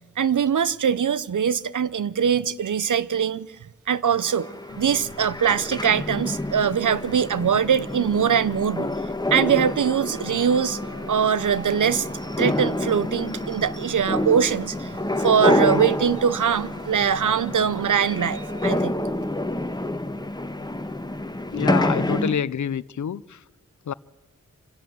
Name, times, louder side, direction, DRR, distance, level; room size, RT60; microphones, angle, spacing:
voice 1, 0.2-3.5 3.9-4.5 4.8-8.9 9.3-10.8 11.1-12.1 12.4-14.9 15.2-18.9, right 7 dB, 75° right, 0.7 m, -22 dB
sound 1, 4.2-22.4, left 1 dB, 15° left, 1.3 m, -28 dB
sound 2, 4.7-22.4, left 2 dB, 30° left, 1.8 m, -44 dB
sound 3, 9.2-18.8, right 2 dB, 55° right, 2.6 m, -45 dB
voice 2, 21.5-23.4 23.9-24.0, left 8 dB, 70° left, 0.6 m, -27 dB
25.5 x 16.5 x 7.5 m
cardioid pair, 45°, 31 cm